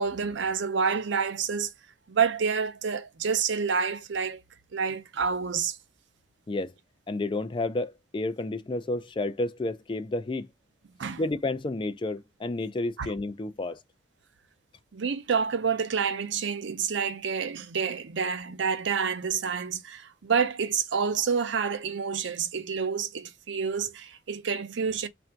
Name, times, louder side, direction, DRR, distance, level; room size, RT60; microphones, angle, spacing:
voice 1, 0.0-1.7 2.1-4.4 4.7-5.8 11.0-11.2 13.0-13.1 14.9-25.1, right 6 dB, 75° right, 0.6 m, -28 dB
voice 2, 7.1-10.5 11.2-13.8, left 2 dB, 25° left, 0.4 m, -31 dB
3.4 x 2.6 x 4.4 m
head